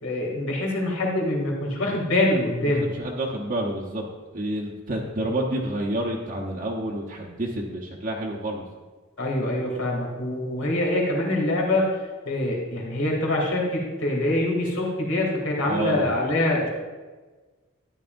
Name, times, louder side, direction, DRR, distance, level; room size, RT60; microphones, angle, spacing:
voice 1, 0.0-2.9 9.2-12.0 12.2-16.7, left 1 dB, 90° left, -2 dB, 2.8 m, -24 dB
voice 2, 2.6-4.0 4.3-8.6 15.7-16.1, right 1 dB, 40° right, -2 dB, 1.0 m, -29 dB
13.0 x 10.0 x 2.6 m, 1.3 s
head